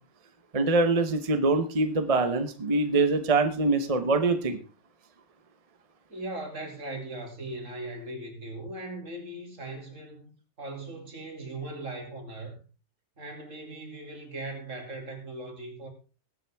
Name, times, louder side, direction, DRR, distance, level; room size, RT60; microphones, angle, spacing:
voice 1, 0.5-4.6, right 3 dB, 30° right, 1.0 m, -24 dB
voice 2, 6.1-12.6 13.2-15.9, right 2 dB, 70° right, 3.0 m, -39 dB
20.5 x 7.6 x 3.5 m
omnidirectional pair, 1.4 m